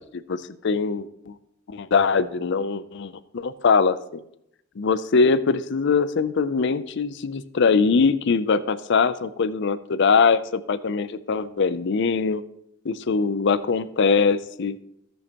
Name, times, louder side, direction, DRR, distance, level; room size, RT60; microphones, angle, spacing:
voice 1, 0.1-1.3 1.7-4.2 4.8-12.4 12.8-14.8, left 5 dB, 60° left, 14 dB, 0.5 m, -22 dB
16.5 x 6.4 x 2.9 m, 0.78 s
head